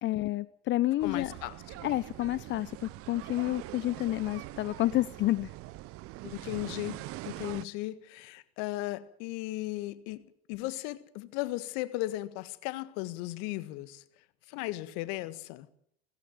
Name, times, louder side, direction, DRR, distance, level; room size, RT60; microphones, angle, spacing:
voice 1, 0.0-1.3 1.8-5.5, left 16 dB, 35° left, 0.7 m, -29 dB
voice 2, 1.0-1.6 6.2-7.0 7.2-10.2 10.5-14.0 14.5-15.7, left 17 dB, 55° left, 1.7 m, -36 dB
sound 1, 1.0-7.7, right 18 dB, 45° right, 0.9 m, -43 dB
17.5 x 16.0 x 9.4 m
hypercardioid pair, 90°, 31 cm